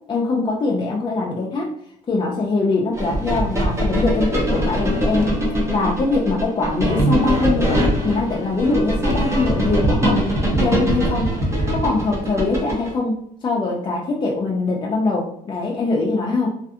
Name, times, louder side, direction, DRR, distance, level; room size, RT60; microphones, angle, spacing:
voice 1, 0.1-1.7 2.1-5.3 5.7-11.3 11.7-16.5, left 3 dB, 25° left, -2 dB, 0.4 m, -22 dB
sound 1, 3.0-12.9, right 1 dB, 15° right, 0.7 m, -21 dB
2.5 x 2.4 x 2.4 m, 0.71 s
cardioid pair, 110°, 17 cm